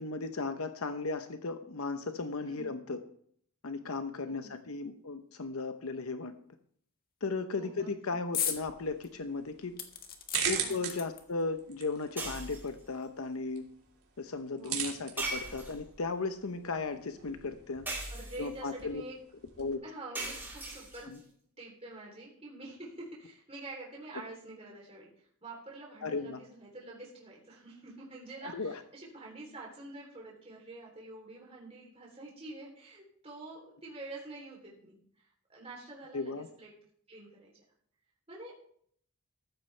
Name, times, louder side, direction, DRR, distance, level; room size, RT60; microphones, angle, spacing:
voice 1, 0.0-3.0 3.6-6.3 7.2-9.8 10.5-13.7 14.2-17.9 18.4-19.0 19.6-19.8 21.1-21.2 26.0-26.4 28.4-28.7 36.1-36.5, left 3 dB, 75° left, 8 dB, 0.8 m, -36 dB
voice 2, 2.4-2.7 4.2-4.6 7.6-8.0 10.5-10.8 14.5-14.9 18.1-19.2 19.8-21.1 21.6-36.7 37.1-37.5 38.3-38.5, right 2 dB, 30° right, -4 dB, 3.3 m, -47 dB
sound 1, 8.3-8.6 9.0-9.1 9.8-11.4 12.3-12.4 12.7-12.8, left 8 dB, 45° left, 1.6 m, -36 dB
sound 2, 8.5-19.7, right 7 dB, 80° right, 3.0 m, -42 dB
sound 3, 12.2-12.8 15.2-16.0 17.9-18.6 20.2-21.2, right 2 dB, 10° right, 4.4 m, -39 dB
14.5 x 12.5 x 3.3 m, 0.63 s
head